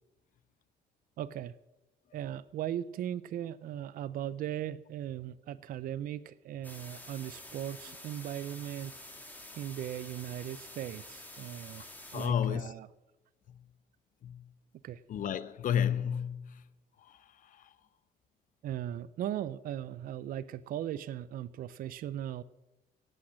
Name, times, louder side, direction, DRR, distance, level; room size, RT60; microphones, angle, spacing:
voice 1, 1.2-1.5 2.1-8.9 9.6-11.9 12.1-12.9 14.8-15.0 18.6-22.4, right 11 dB, 55° right, 0.6 m, -38 dB
sound 1, 6.6-12.3, left 1 dB, 10° left, 2.5 m, -49 dB
voice 2, 12.1-12.7 13.5-13.6 14.2-14.5 15.1-16.6 17.0-17.7, left 9 dB, 50° left, 0.9 m, -32 dB
17.5 x 8.8 x 6.3 m
cardioid pair, 110°, 17 cm